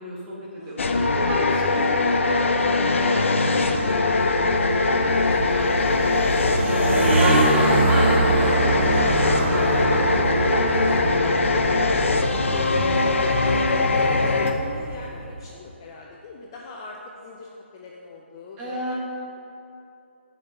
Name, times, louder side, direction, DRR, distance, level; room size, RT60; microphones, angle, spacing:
voice 1, 0.0-4.1 4.5-4.8 7.2-10.2 12.6-13.3 18.6-18.9, equal, 15° right, -6 dB, 1.3 m, -31 dB
voice 2, 0.6-1.0 5.0-7.2 7.7-8.0 10.4-11.9 12.7-13.6 13.9-18.9, left 3 dB, 20° left, -2 dB, 0.4 m, -40 dB
sound 1, 0.8-14.5, left 3 dB, 85° left, 0.6 m, -21 dB
sound 2, 3.8-15.4, right 3 dB, 70° right, 1.3 m, -25 dB
6.6 x 4.4 x 6.6 m, 2.7 s
hypercardioid pair, 170°, 7 cm